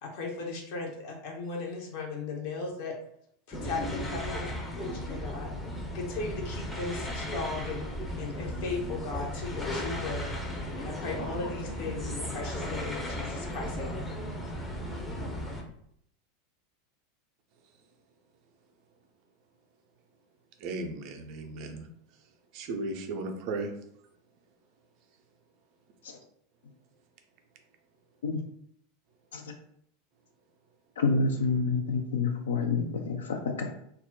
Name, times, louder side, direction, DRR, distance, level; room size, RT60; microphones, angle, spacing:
voice 1, 0.0-3.0 3.5-5.5 5.9-10.4 10.8-14.2, left 3 dB, 50° left, 0.7 m, -37 dB
sound 1, 3.5-15.6, equal, 10° left, 0.5 m, -35 dB
voice 2, 20.6-21.9 22.5-23.7, right 2 dB, 45° right, 0.4 m, -35 dB
voice 3, 31.0-33.7, left 4 dB, 65° left, 0.3 m, -28 dB
2.3 x 2.0 x 3.6 m
figure-of-eight pair, 85°, 0 cm